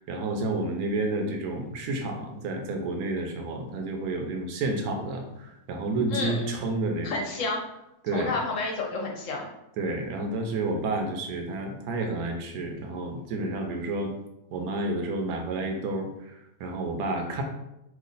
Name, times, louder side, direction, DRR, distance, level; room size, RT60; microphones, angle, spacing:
voice 1, 0.0-7.2 8.0-8.4 9.8-14.1 14.5-17.4, right 2 dB, 80° right, 3 dB, 1.1 m, -30 dB
voice 2, 6.1-6.5 7.0-7.7 8.1-9.5, left 3 dB, 65° left, 0 dB, 0.9 m, -30 dB
3.1 x 2.4 x 3.9 m, 0.89 s
omnidirectional pair, 1.6 m